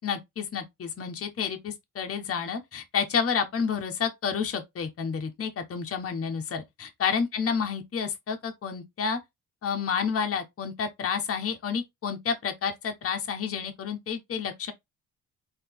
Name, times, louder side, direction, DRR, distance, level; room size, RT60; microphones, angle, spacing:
voice 1, 0.0-9.2 9.6-14.7, left 6 dB, 50° left, 1.1 m, -30 dB
4.1 x 2.9 x 3.5 m
cardioid pair, 90°, 30 cm